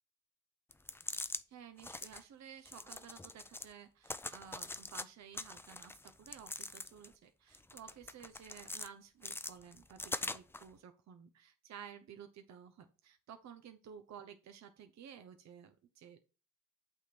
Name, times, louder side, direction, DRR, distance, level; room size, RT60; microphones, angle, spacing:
sound 1, 0.7-1.4 1.8-2.2 2.6-3.7 4.0-5.0 5.3-7.1 7.5-8.9 9.2-10.6, left 2 dB, 10° left, 0.4 m, -43 dB
voice 1, 1.5-16.2, right 8 dB, 65° right, 8 dB, 0.9 m, -54 dB
8.4 x 3.6 x 6.0 m, 0.34 s
cardioid pair, 90°, 30 cm